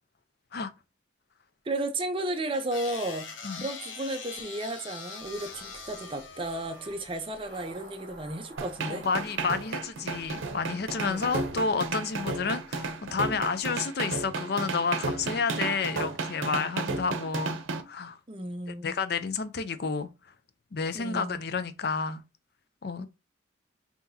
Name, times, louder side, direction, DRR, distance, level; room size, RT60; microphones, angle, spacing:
voice 1, 1.7-3.3 3.6-9.0 11.1-11.3 18.3-19.0 20.9-21.4 23.0-23.1, right 1 dB, 25° right, 0.6 m, -33 dB
sound 1, 2.5-7.9, left 5 dB, 80° left, 0.9 m, -43 dB
sound 2, 5.2-13.7, right 1 dB, 45° right, 1.7 m, -51 dB
sound 3, 8.6-17.8, right 3 dB, 90° right, 0.7 m, -33 dB
voice 2, 8.9-17.6 17.9-18.2 18.8-20.1 20.7-22.2 22.8-23.1, left 5 dB, 55° left, 0.5 m, -30 dB
5.7 x 2.9 x 2.7 m
head